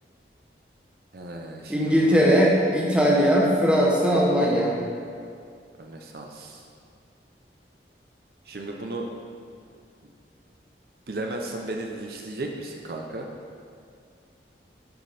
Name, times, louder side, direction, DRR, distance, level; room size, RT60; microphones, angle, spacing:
voice 1, 1.1-2.2 5.8-6.7 8.4-9.1 10.0-10.1 11.1-13.3, right 2 dB, 55° right, 1 dB, 0.6 m, -35 dB
voice 2, 1.7-4.8, equal, 5° right, -4 dB, 1.1 m, -20 dB
11.5 x 5.2 x 4.2 m, 2.3 s
head